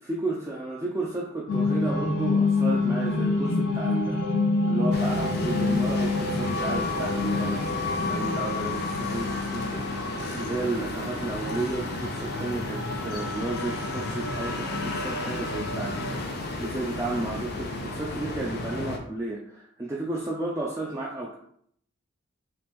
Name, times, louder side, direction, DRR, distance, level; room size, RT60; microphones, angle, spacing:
voice 1, 0.0-4.2 4.6-9.9 10.4-21.3, right 2 dB, 15° right, -4 dB, 0.3 m, -33 dB
sound 1, 1.5-16.2, left 3 dB, 70° left, 0.9 m, -28 dB
sound 2, 4.9-19.0, left 2 dB, 50° left, 0.5 m, -34 dB
2.9 x 2.9 x 3.5 m, 0.66 s
head